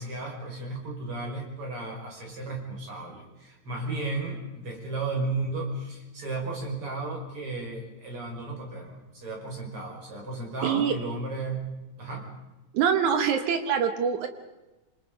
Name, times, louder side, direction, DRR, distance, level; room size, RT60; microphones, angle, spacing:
voice 1, 0.0-11.6 12.0-12.3, right 2 dB, 45° right, 1 dB, 6.2 m, -34 dB
voice 2, 10.6-10.9 12.7-14.3, right 7 dB, 75° right, 7 dB, 2.6 m, -24 dB
27.0 x 26.0 x 5.3 m, 1.1 s
omnidirectional pair, 3.6 m